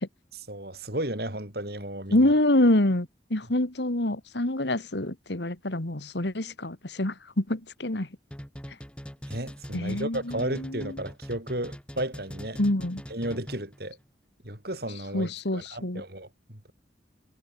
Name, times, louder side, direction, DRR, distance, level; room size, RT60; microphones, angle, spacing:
voice 1, 0.5-2.3 9.3-12.6 13.1-14.0 14.4-16.7, right 1 dB, 55° right, 7.1 m, -34 dB
voice 2, 2.1-8.1 9.7-11.0 12.6-13.0 15.1-16.0, left 1 dB, 70° left, 2.0 m, -26 dB
sound 1, 8.3-13.8, equal, 5° left, 4.9 m, -41 dB
head